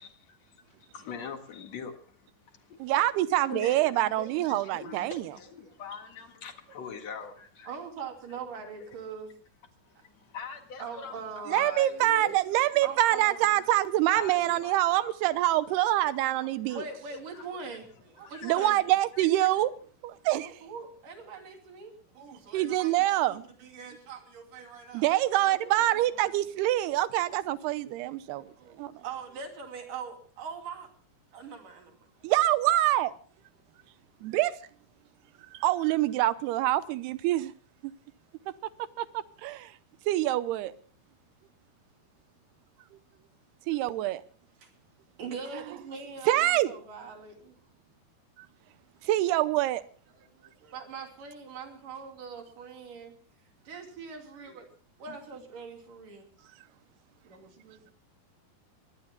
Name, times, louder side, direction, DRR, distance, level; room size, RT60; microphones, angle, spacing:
voice 1, 0.0-2.9 3.5-7.7 9.8-12.4 13.6-13.7 14.1-15.5 16.0-16.8 17.1-17.8 18.2-18.8 19.2-19.6, left 6 dB, 50° left, 2.5 m, -44 dB
voice 2, 2.8-5.2 11.5-16.8 18.4-19.7 20.0-20.5 22.5-23.4 24.9-28.5 28.8-28.9 32.2-33.1 34.2-34.5 35.5-37.5 37.8-37.9 39.0-39.7 40.1-40.7 43.7-44.2 46.3-46.7 49.0-49.8, right 15 dB, 85° right, 2.8 m, -25 dB
voice 3, 7.7-9.3 10.0-10.1 10.8-11.7 12.8-13.6 16.7-18.8 19.6-19.7 20.4-25.1 25.4-26.5 28.6-30.9 31.3-32.3 44.6-44.7 45.2-47.5 50.1-53.2 53.7-54.7 55.0-56.3 57.2-57.9, right 5 dB, 55° right, 4.3 m, -42 dB
24.5 x 20.0 x 2.3 m
omnidirectional pair, 4.6 m